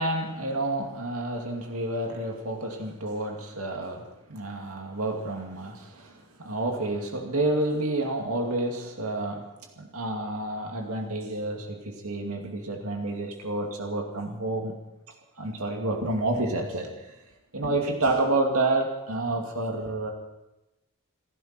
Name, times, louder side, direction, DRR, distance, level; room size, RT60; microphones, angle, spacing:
voice 1, 0.0-9.5 9.8-14.8 15.4-17.2 17.5-20.1, right 2 dB, 75° right, 2 dB, 2.6 m, -29 dB
29.0 x 11.0 x 4.5 m, 0.98 s
head